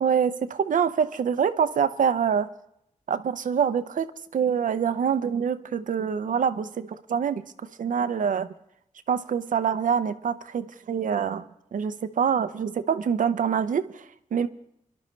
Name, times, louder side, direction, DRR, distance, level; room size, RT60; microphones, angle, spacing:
voice 1, 0.0-2.5 3.1-7.4 7.8-8.5 9.1-11.4 11.7-14.1 14.3-14.5, right 7 dB, 75° right, 11 dB, 0.6 m, -25 dB
24.5 x 11.5 x 3.2 m, 0.76 s
wide cardioid pair, 85°, 14 cm